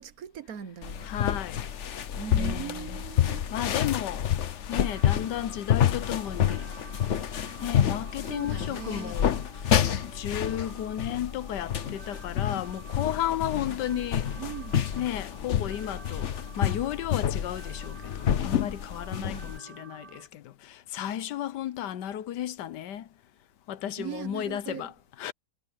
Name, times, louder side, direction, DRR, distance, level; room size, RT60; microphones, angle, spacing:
voice 1, 0.0-1.1 2.2-3.4 8.2-9.2 13.5-13.6 13.9-14.0 14.4-14.8 19.2-19.5 24.0-24.9, right 9 dB, 65° right, 1.3 m, -39 dB
sound 1, 0.8-19.6, left 9 dB, 50° left, 1.0 m, -29 dB
voice 2, 1.0-1.6 2.3-3.0 3.5-4.3 4.7-6.7 7.6-14.3 15.0-23.1 23.7-25.3, left 11 dB, 90° left, 1.4 m, -34 dB
sound 2, 4.7-20.3, right 4 dB, 80° right, 2.4 m, -50 dB
omnidirectional pair, 1.8 m